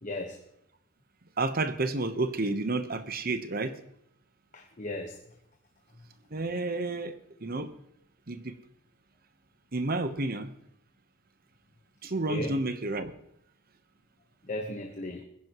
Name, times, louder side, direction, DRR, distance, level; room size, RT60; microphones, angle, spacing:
voice 1, 0.0-0.4 4.5-5.2 12.3-12.6 14.4-15.2, left 1 dB, 35° left, 2 dB, 1.2 m, -36 dB
voice 2, 1.4-3.8 6.3-7.2 7.4-7.7 8.3-8.6 9.7-10.5 12.0-13.1, right 2 dB, 45° right, 10 dB, 1.0 m, -30 dB
21.5 x 11.0 x 3.1 m, 0.74 s
head